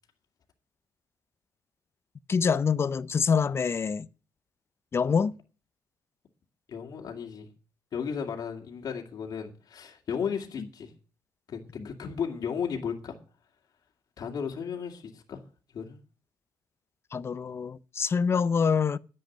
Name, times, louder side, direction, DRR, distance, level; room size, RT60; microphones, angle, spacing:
voice 1, 2.3-4.1 4.9-5.3 11.8-11.9 17.1-19.0, left 6 dB, 30° left, 0.5 m, -26 dB
voice 2, 6.7-7.5 7.9-10.9 11.5-13.2 14.2-15.4 15.7-16.0, left 6 dB, 50° left, 2.3 m, -34 dB
10.5 x 7.8 x 9.0 m
cardioid pair, 130°, 8 cm